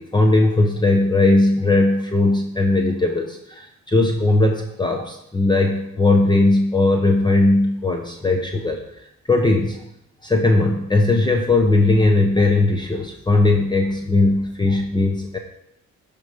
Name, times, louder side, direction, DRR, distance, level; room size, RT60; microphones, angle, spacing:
voice 1, 0.0-8.8 9.3-9.8 10.2-15.4, left 2 dB, 15° left, 3 dB, 1.0 m, -18 dB
10.5 x 5.3 x 4.9 m, 0.79 s
cardioid pair, 90°, 30 cm